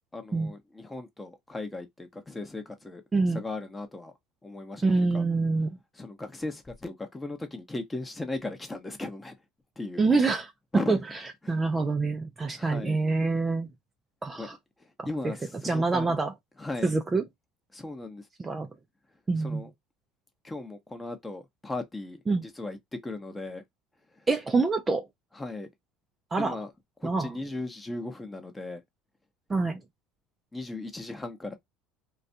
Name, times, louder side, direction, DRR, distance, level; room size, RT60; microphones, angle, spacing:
voice 1, 0.1-3.0 3.3-4.1 4.4-5.2 6.0-9.3 9.8-10.0 10.7-11.0 11.4-11.6 12.5-13.0 14.4-14.5 14.8-16.2 16.6-16.9 17.7-18.3 19.4-19.7 20.4-22.8 23.0-23.6 24.2-24.3 25.3-25.7 26.4-26.7 27.0-28.8 30.5-31.6, left 2 dB, 15° left, 0.7 m, -37 dB
voice 2, 3.1-3.4 4.8-5.8 10.0-10.5 10.9-11.2 11.5-13.7 14.2-14.6 15.0-15.3 15.6-16.3 16.8-17.2 18.4-18.7 19.3-19.6 22.3-22.4 24.3-25.0 26.3-26.6 27.0-27.3 29.5-29.8, right 3 dB, 20° right, 0.3 m, -26 dB
2.3 x 2.1 x 2.6 m
supercardioid pair, 105°, 0 cm